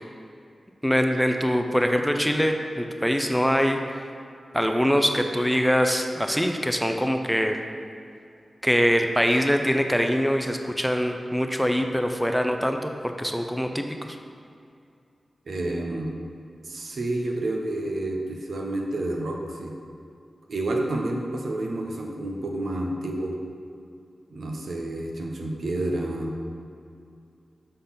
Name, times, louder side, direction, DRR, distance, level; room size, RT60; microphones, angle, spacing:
voice 1, 0.8-3.8 4.5-7.6 8.6-12.9 13.2-14.2, equal, ahead, 5 dB, 0.4 m, -23 dB
voice 2, 15.5-16.2 16.6-19.7 20.5-23.4 24.3-26.3, right 1 dB, 80° right, 0 dB, 0.8 m, -29 dB
6.6 x 3.8 x 5.6 m, 2.5 s
wide cardioid pair, 95°, 0 cm